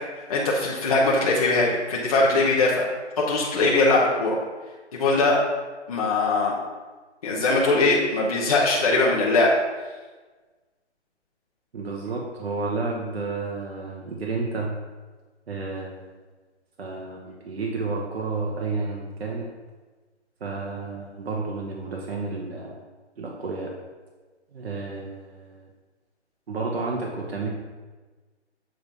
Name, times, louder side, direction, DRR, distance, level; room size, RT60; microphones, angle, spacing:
voice 1, 0.3-2.9 3.3-4.4 4.9-5.4 5.9-6.5 7.2-9.5, left 2 dB, 35° left, -5 dB, 0.9 m, -21 dB
voice 2, 11.7-14.7 15.5-16.1 16.8-19.5 20.4-22.9 23.2-23.7 24.5-25.7 26.5-27.5, right 3 dB, 60° right, -1 dB, 1.1 m, -31 dB
7.5 x 3.2 x 5.3 m, 1.3 s
hypercardioid pair, 160°, 35 cm